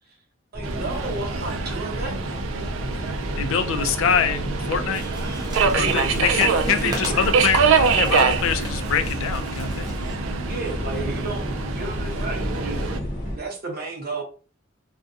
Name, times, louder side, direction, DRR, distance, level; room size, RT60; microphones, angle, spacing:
sound 1, 0.5-13.4, equal, 40° left, 0.8 m, -31 dB
voice 1, 0.5-2.2 5.7-7.2 10.4-12.9 13.3-14.2, right 2 dB, 50° right, 0.7 m, -32 dB
Subway metro underground, 0.6-13.0, right 5 dB, 90° right, 0.3 m, -25 dB
voice 2, 3.4-5.1 5.7-7.6 7.9-9.9, left 7 dB, 85° left, 0.4 m, -24 dB
sound 2, 4.9-10.1, right 1 dB, 20° right, 0.5 m, -38 dB
2.6 x 2.1 x 2.4 m
head